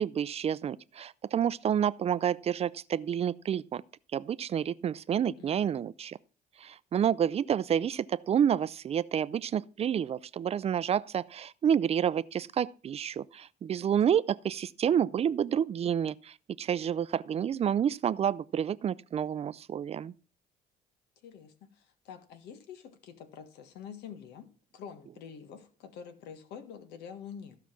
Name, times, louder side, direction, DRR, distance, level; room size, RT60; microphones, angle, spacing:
voice 1, 0.0-3.8 4.1-6.2 6.6-20.1, right 8 dB, 35° right, 0.5 m, -29 dB
voice 2, 5.4-5.9 13.8-14.0 21.2-24.5 24.7-27.6, left 7 dB, 85° left, 1.6 m, -47 dB
15.0 x 5.8 x 6.0 m
cardioid pair, 110°, 17 cm